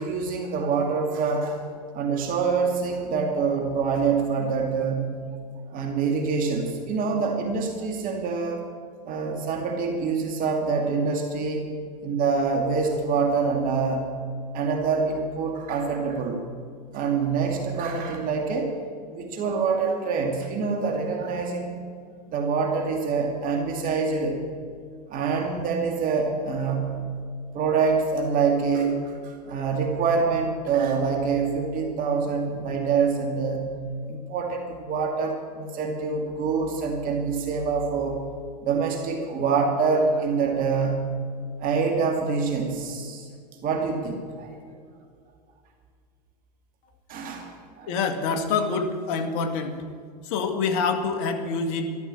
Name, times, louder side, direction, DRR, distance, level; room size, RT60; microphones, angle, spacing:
voice 1, 0.0-1.6 1.9-5.2 5.7-8.6 9.1-11.6 12.0-14.2 14.5-16.4 16.9-18.7 19.1-21.9 22.3-24.4 25.1-27.0 27.5-33.8 34.1-38.2 38.6-41.1 41.6-43.3 43.6-44.6 47.1-47.9, right 5 dB, 40° right, 2 dB, 2.4 m, -25 dB
voice 2, 47.9-49.8 50.2-51.9, left 4 dB, 60° left, 7 dB, 2.1 m, -26 dB
13.5 x 13.0 x 7.6 m, 2.1 s
hypercardioid pair, 105°, 21 cm